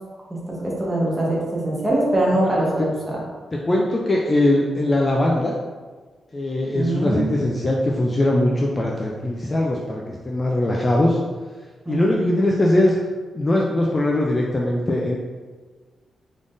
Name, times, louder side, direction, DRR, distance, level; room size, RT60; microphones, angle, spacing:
voice 1, 0.5-3.2 6.7-7.3 11.8-12.3, right 1 dB, 15° right, -4 dB, 0.9 m, -22 dB
voice 2, 3.5-5.6 6.3-11.2 11.9-13.0 13.3-15.2, left 1 dB, 20° left, -2 dB, 0.3 m, -21 dB
3.7 x 3.6 x 2.5 m, 1.4 s
wide cardioid pair, 150°, 0 cm